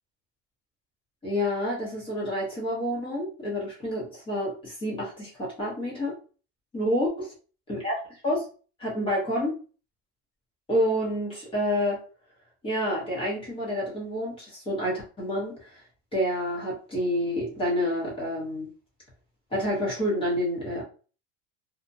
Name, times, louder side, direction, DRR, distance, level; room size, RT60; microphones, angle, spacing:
voice 1, 1.2-6.1 6.7-7.3 7.7-8.5 8.8-9.6 10.7-12.0 12.6-15.8 16.1-18.7 19.5-20.8, equal, 15° left, -6 dB, 0.9 m, -28 dB
2.4 x 2.1 x 2.6 m, 0.37 s
cardioid pair, 170°, 33 cm